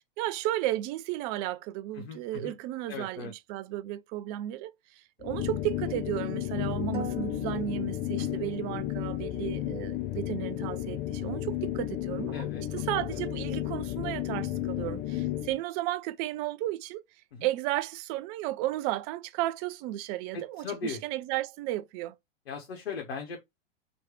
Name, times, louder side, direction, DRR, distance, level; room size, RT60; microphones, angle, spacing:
voice 1, 0.0-12.5 12.7-17.0 17.4-22.2, right 15 dB, 40° right, 0.6 m, -34 dB
voice 2, 1.9-2.5 2.9-3.3 8.2-8.4 12.3-12.6 13.1-13.2 17.3-17.5 20.3-21.0 22.5-23.4, left 5 dB, 75° left, 1.3 m, -38 dB
sound 1, 5.2-15.6, left 13 dB, 30° left, 0.6 m, -33 dB
sound 2, 6.9-8.9, right 3 dB, 15° right, 1.3 m, -44 dB
3.2 x 3.1 x 4.5 m
hypercardioid pair, 110°, 31 cm